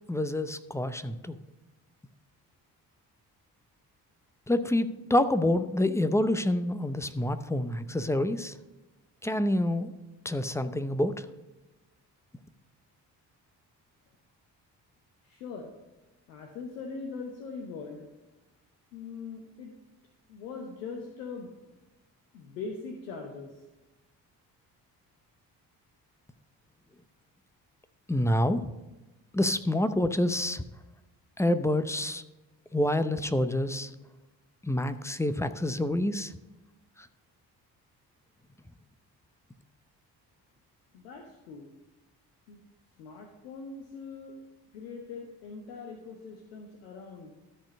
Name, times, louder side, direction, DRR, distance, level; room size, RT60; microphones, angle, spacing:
voice 1, 0.1-1.4 4.5-8.6 9.2-9.9 10.2-11.3 28.1-28.7 29.3-30.6 31.4-32.2 32.7-33.9 34.6-36.3, left 1 dB, 5° left, 12 dB, 0.6 m, -27 dB
voice 2, 15.2-15.7 16.3-18.1 18.9-19.7 20.3-21.5 22.3-23.5 40.9-41.7 42.5-42.6 43.0-44.3 44.7-47.3, left 4 dB, 80° left, 3 dB, 1.0 m, -41 dB
13.0 x 4.4 x 5.3 m, 1.1 s
figure-of-eight pair, 40°, 49 cm